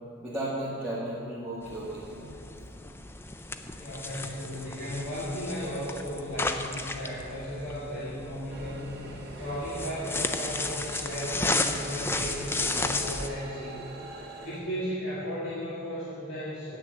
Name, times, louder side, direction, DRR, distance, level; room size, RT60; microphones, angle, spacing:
voice 1, 0.2-2.3, right 1 dB, 5° right, -10 dB, 1.6 m, -34 dB
sound 1, 1.6-13.3, left 2 dB, 10° left, 0.4 m, -34 dB
voice 2, 3.7-8.9 9.4-13.8 14.4-16.8, equal, 70° left, -9 dB, 2.0 m, -35 dB
sound 2, 8.5-14.6, right 2 dB, 55° right, 1.0 m, -43 dB
9.1 x 6.6 x 7.4 m, 3.0 s
head